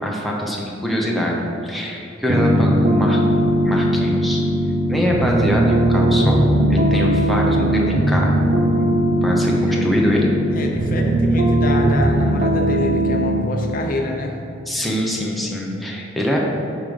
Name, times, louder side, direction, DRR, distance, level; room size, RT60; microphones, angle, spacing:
voice 1, 0.0-3.2 3.6-4.4 4.9-6.4 6.7-9.0 9.2-10.3 14.7-16.4, equal, ahead, -3 dB, 0.8 m, -23 dB
sound 1, 2.3-13.4, right 1 dB, 45° right, 0.6 m, -18 dB
voice 2, 9.7-10.1 10.5-14.4, left 1 dB, 45° left, 2 dB, 0.7 m, -26 dB
9.4 x 3.9 x 5.0 m, 2.8 s
head